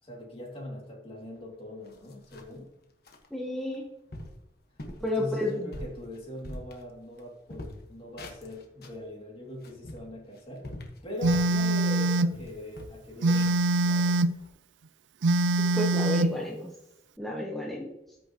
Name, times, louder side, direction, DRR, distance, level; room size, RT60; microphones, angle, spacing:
voice 1, 0.0-2.7 5.0-10.7 11.0-14.2, left 1 dB, 30° left, -1 dB, 2.5 m, -41 dB
sound 1, 1.4-1.5 1.8-2.6 3.0-3.3 3.7-3.8 4.1-4.4 4.8-5.1 5.5-7.2 7.5-9.0 9.5-11.6 12.0-12.1 12.3-14.5, left 1 dB, 55° left, 1.4 m, -43 dB
voice 2, 3.3-3.9 5.0-5.7 15.7-16.7 17.2-17.9, left 1 dB, ahead, -3 dB, 1.1 m, -31 dB
Telephone, 11.2-12.4 13.2-14.4 15.2-16.4, right 2 dB, 80° right, 0.4 m, -24 dB
13.5 x 6.4 x 3.0 m, 0.86 s
head